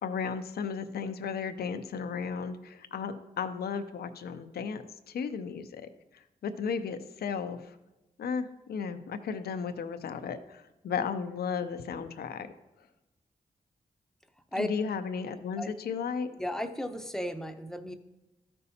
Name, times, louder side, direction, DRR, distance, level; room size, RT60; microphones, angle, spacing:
voice 1, 0.0-5.9 6.1-7.8 8.2-12.5 14.6-16.3, left 6 dB, 85° left, 9 dB, 0.6 m, -34 dB
voice 2, 16.4-17.9, left 1 dB, 5° left, 7 dB, 0.8 m, -34 dB
13.0 x 5.4 x 2.8 m, 1.0 s
cardioid pair, 60°, 16 cm